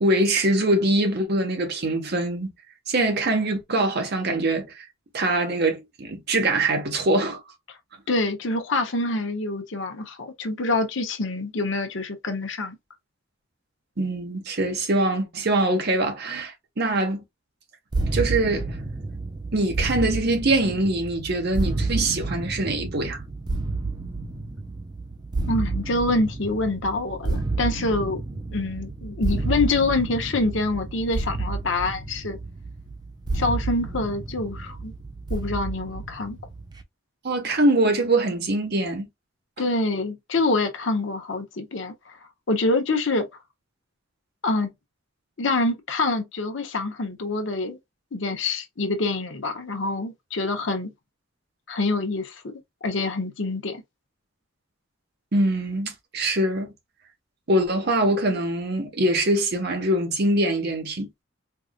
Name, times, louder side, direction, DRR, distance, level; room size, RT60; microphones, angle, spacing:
voice 1, 0.0-2.5 2.9-4.9 5.1-7.4 14.0-17.2 18.1-18.8 19.5-23.2 37.2-39.1 55.3-56.7 57.5-61.2, right 1 dB, 50° right, 1.1 m, -23 dB
voice 2, 8.1-12.8 25.5-28.2 28.5-32.4 33.3-34.9 35.3-36.4 39.6-42.2 42.5-43.3 44.4-44.7 45.4-47.8 48.1-50.9 51.7-52.5 52.8-53.8, left 2 dB, 60° left, 0.8 m, -26 dB
sound 1, 17.9-36.8, right 3 dB, 20° right, 0.4 m, -30 dB
4.6 x 2.6 x 2.3 m
head